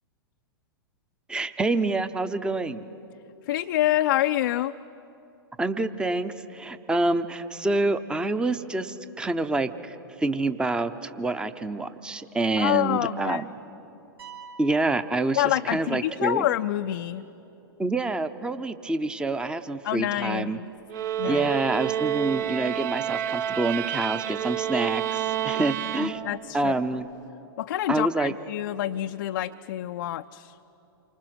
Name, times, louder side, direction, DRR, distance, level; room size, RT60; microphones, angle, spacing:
voice 1, 1.3-2.8 5.6-13.4 14.6-16.5 17.8-20.6 21.2-26.2 26.5-27.1 27.9-28.3, right 2 dB, 5° right, 12 dB, 0.7 m, -27 dB
voice 2, 3.5-4.7 12.6-13.4 15.4-17.2 19.8-20.7 21.2-21.5 26.0-26.7 27.6-30.6, left 13 dB, 55° left, 7 dB, 0.5 m, -27 dB
sound 1, 14.2-16.1, right 6 dB, 65° right, 2.3 m, -47 dB
sound 2, 20.9-26.6, right 11 dB, 50° right, 0.7 m, -29 dB
28.0 x 25.0 x 6.3 m, 2.9 s
figure-of-eight pair, 105°, 13 cm